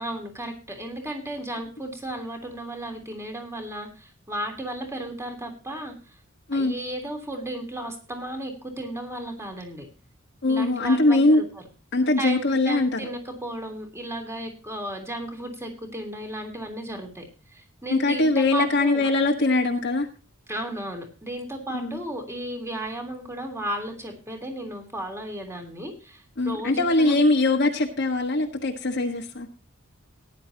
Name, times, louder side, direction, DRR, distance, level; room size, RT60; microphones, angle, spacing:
voice 1, 0.0-5.9 6.5-9.9 10.5-11.4 12.2-17.3 17.5-19.0 20.5-27.2, right 1 dB, 15° right, 3 dB, 3.2 m, -34 dB
voice 2, 10.4-11.4 11.9-13.0 17.9-20.1 21.7-21.9 26.4-29.5, left 2 dB, 55° left, 0 dB, 1.4 m, -22 dB
18.0 x 10.5 x 2.9 m, 0.34 s
head